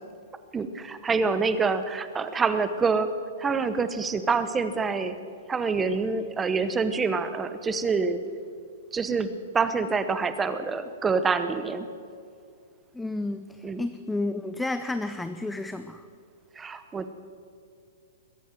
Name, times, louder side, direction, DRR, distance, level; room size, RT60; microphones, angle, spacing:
voice 1, 0.5-3.1 3.4-5.2 5.5-8.2 8.9-11.9 13.6-13.9 16.5-17.1, right 4 dB, 15° right, 11 dB, 0.9 m, -26 dB
voice 2, 12.9-16.0, left 2 dB, 5° left, 10 dB, 0.5 m, -31 dB
21.5 x 8.4 x 7.6 m, 2.3 s
hypercardioid pair, 130°, 0 cm